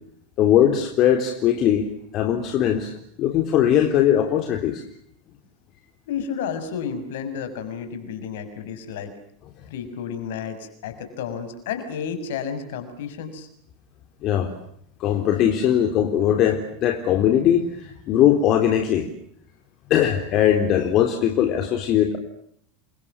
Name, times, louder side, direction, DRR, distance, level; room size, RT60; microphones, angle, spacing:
voice 1, 0.4-1.9 2.1-4.8 14.2-14.5 15.0-19.1 19.9-22.2, left 10 dB, 45° left, 4 dB, 3.7 m, -20 dB
voice 2, 6.1-9.1 9.7-13.5, left 7 dB, 65° left, 8 dB, 6.7 m, -31 dB
30.0 x 25.0 x 7.4 m, 0.67 s
hypercardioid pair, 80°, 0 cm